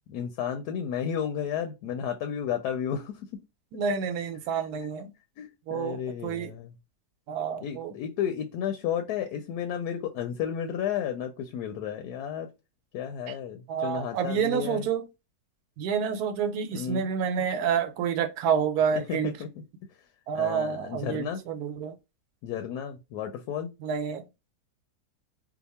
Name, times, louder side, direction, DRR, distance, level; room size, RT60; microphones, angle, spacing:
voice 1, 0.1-3.4 4.8-4.9 5.4-6.7 7.6-12.5 12.9-14.9 16.7-17.1 18.9-19.6 20.3-21.4 22.4-23.7, left 8 dB, 85° left, 1.1 m, -32 dB
voice 2, 3.7-5.1 5.7-6.5 7.3-7.9 13.7-15.0 15.8-19.3 20.3-21.9 23.8-24.2, right 7 dB, 80° right, 1.1 m, -28 dB
2.8 x 2.3 x 4.1 m
omnidirectional pair, 1.7 m